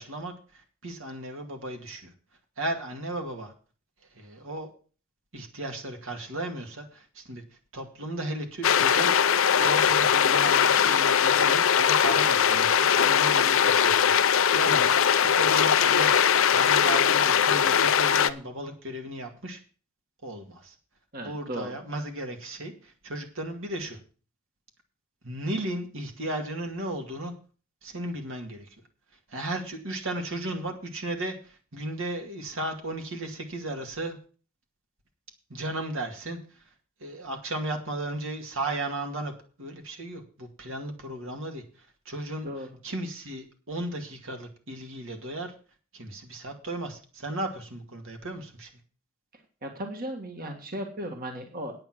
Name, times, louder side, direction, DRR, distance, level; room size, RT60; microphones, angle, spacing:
voice 1, 0.0-2.1 2.6-3.5 4.1-4.7 5.3-7.4 7.7-9.1 9.6-14.9 15.2-16.1 16.5-19.6 20.2-20.7 21.2-24.0 25.2-27.3 27.8-28.7 29.3-34.2 35.5-36.4 37.0-39.3 39.6-41.6 42.1-42.5 42.8-45.5 45.9-48.7, right 1 dB, 65° right, 4 dB, 2.1 m, -35 dB
sound 1, 8.6-18.3, left 8 dB, 70° left, 0.7 m, -21 dB
voice 2, 21.1-21.7 42.4-42.7 49.6-51.7, right 1 dB, 45° right, 3 dB, 1.8 m, -36 dB
9.3 x 8.9 x 6.0 m, 0.39 s
head